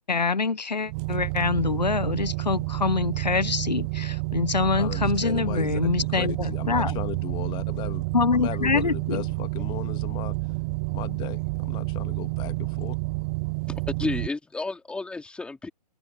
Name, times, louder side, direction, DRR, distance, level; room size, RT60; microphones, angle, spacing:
voice 1, 0.1-7.0 8.1-9.3, left 4 dB, 85° left, 1.4 m, -25 dB
sound 1, 0.9-14.3, right 27 dB, 15° right, 0.3 m, -29 dB
voice 2, 4.8-5.9 6.2-8.0 8.4-10.3 10.9-11.4 11.7-12.9, left 19 dB, 20° left, 2.0 m, -36 dB
voice 3, 14.0-15.7, left 3 dB, 5° left, 4.1 m, -31 dB
open air
figure-of-eight pair, 135°, 21 cm